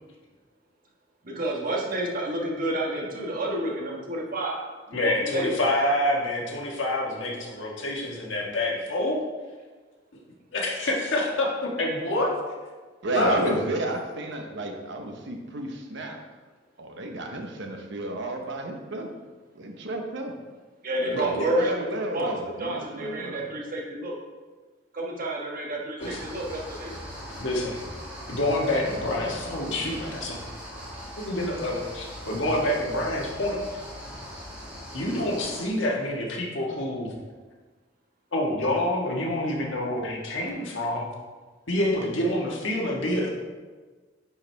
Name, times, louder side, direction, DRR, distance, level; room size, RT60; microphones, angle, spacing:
voice 1, 1.3-4.6 4.9-5.6 20.8-21.9 22.1-22.3 22.6-24.1 24.9-27.0, right 1 dB, 45° right, -2 dB, 1.3 m, -29 dB
voice 2, 4.9-9.2 10.5-12.3 13.1-13.5 21.1-21.5 26.0-26.2 27.4-27.8 28.3-30.4 31.2-33.6 34.9-37.1 38.3-41.1 41.7-43.4, left 1 dB, 75° left, -2 dB, 1.6 m, -27 dB
voice 3, 13.0-16.2 16.8-19.1 19.5-20.3 21.0-23.4, right 1 dB, 65° right, 3 dB, 1.0 m, -32 dB
sound 1, 26.0-35.6, equal, 10° right, 1.9 m, -40 dB
9.8 x 4.7 x 3.4 m, 1.4 s
head